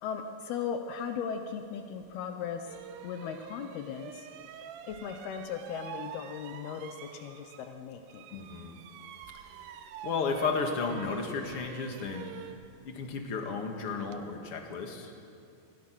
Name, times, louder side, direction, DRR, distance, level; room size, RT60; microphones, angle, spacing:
voice 1, 0.0-2.8 3.0-4.3 4.8-8.4, left 7 dB, 75° left, 6 dB, 2.9 m, -37 dB
sound 1, 2.0-2.1 2.6-7.8 8.1-14.2, right 9 dB, 70° right, 2.6 m, -47 dB
voice 2, 8.3-8.7 10.0-12.2 12.8-15.1, left 4 dB, 40° left, 3 dB, 2.4 m, -33 dB
27.0 x 21.5 x 6.2 m, 2.5 s
omnidirectional pair, 4.7 m